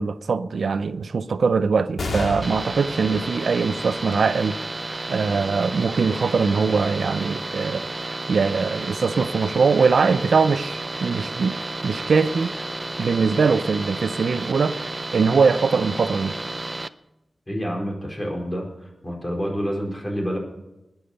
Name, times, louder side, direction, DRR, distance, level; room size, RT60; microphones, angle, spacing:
voice 1, 0.0-4.6 5.1-7.9 8.3-11.6 11.8-12.5 13.0-14.8 15.1-16.4, right 5 dB, 80° right, 0.5 m, -21 dB
sound 1, 2.0-8.9 9.5-9.6 10.7-11.3, left 2 dB, 85° left, 1.9 m, -37 dB
sound 2, 2.4-16.9, right 2 dB, 25° right, 0.5 m, -32 dB
voice 2, 17.5-20.4, equal, 25° left, 4.5 m, -28 dB
20.5 x 7.2 x 6.7 m
wide cardioid pair, 115°, 0 cm